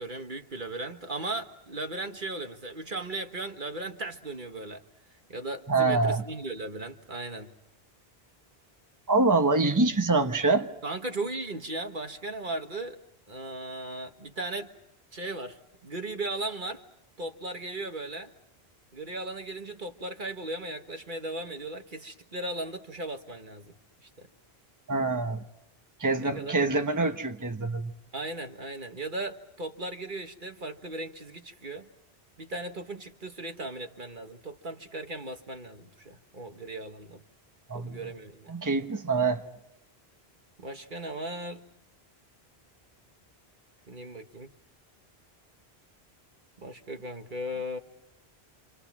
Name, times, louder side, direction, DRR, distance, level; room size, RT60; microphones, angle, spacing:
voice 1, 0.0-4.8 5.3-7.5 10.8-13.0 13.3-14.7 15.1-16.8 17.2-18.3 18.9-23.7 24.0-24.3 26.2-26.7 28.1-31.9 32.4-37.2 37.7-38.5 40.6-41.6 43.9-44.5 46.6-47.8, right 2 dB, 50° right, 1.6 m, -37 dB
voice 2, 5.7-6.2 9.1-10.7 24.9-25.4 26.0-27.9 37.7-38.1 38.5-39.4, right 3 dB, 20° right, 1.3 m, -25 dB
28.5 x 27.5 x 6.1 m
omnidirectional pair, 1.1 m